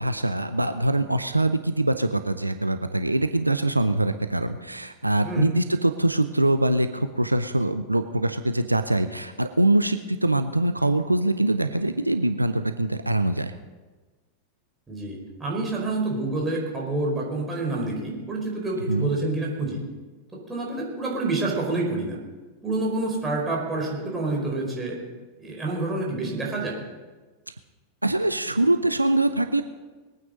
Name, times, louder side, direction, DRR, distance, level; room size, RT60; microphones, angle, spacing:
voice 1, 0.0-13.5 18.9-19.1 28.0-29.6, right 1 dB, 85° right, 10 dB, 0.6 m, -23 dB
voice 2, 14.9-19.8 20.5-22.2 22.6-25.0 25.4-26.8, right 2 dB, 15° right, -2 dB, 4.7 m, -28 dB
21.0 x 9.3 x 5.3 m, 1.3 s
figure-of-eight pair, 90°, 0 cm